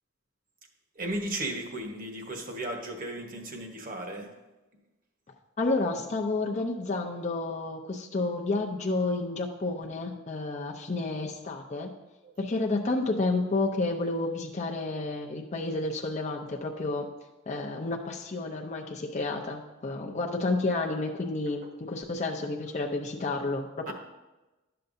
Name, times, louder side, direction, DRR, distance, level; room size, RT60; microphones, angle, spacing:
voice 1, 1.0-4.3 23.9-24.0, right 1 dB, 45° right, 3 dB, 1.2 m, -35 dB
voice 2, 5.6-11.9 12.4-17.1 17.5-23.9, left 2 dB, 35° left, 0 dB, 0.6 m, -30 dB
11.5 x 6.7 x 2.6 m, 1.1 s
head